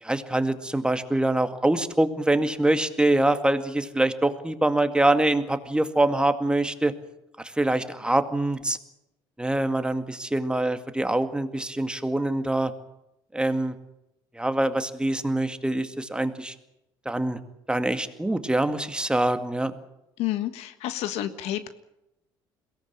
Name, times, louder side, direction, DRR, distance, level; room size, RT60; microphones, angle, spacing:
voice 1, 0.0-6.9 7.6-8.8 9.4-12.7 13.3-13.8 14.4-16.5 17.1-17.4 17.7-19.7, right 1 dB, 10° right, 8 dB, 2.1 m, -24 dB
voice 2, 20.2-21.7, left 13 dB, 75° left, 11 dB, 1.6 m, -30 dB
22.5 x 17.5 x 8.8 m, 0.87 s
supercardioid pair, 75°, 11 cm